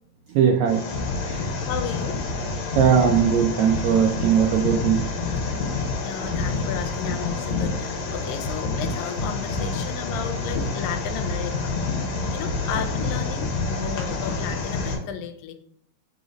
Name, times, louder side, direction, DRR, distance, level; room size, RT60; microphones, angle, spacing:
voice 1, 0.3-0.9 1.2-1.5 2.7-5.0, right 8 dB, 85° right, 2 dB, 1.6 m, -20 dB
sound 1, 0.7-15.0, left 3 dB, 65° left, 2.0 m, -28 dB
voice 2, 1.3-2.2 6.0-11.8 12.3-15.5, left 8 dB, 85° left, 7 dB, 2.4 m, -34 dB
4.9 x 4.0 x 5.0 m, 0.66 s
omnidirectional pair, 4.0 m